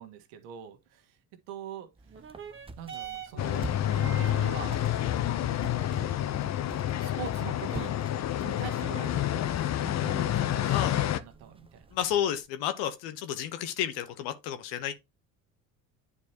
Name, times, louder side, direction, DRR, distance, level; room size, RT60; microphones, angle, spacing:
voice 1, 0.0-1.9 2.8-4.8 5.9-6.6 7.0-8.0 8.4-11.9, right 9 dB, 75° right, 1.7 m, -44 dB
sound 1, 1.9-12.5, right 2 dB, 15° right, 0.8 m, -47 dB
sound 2, 2.1-11.0 11.9-12.0, right 6 dB, 30° right, 1.5 m, -47 dB
sound 3, 3.4-11.2, left 11 dB, 40° left, 0.8 m, -29 dB
voice 2, 11.9-14.9, left 10 dB, 70° left, 1.1 m, -31 dB
9.7 x 4.7 x 2.9 m
hypercardioid pair, 75°, 40 cm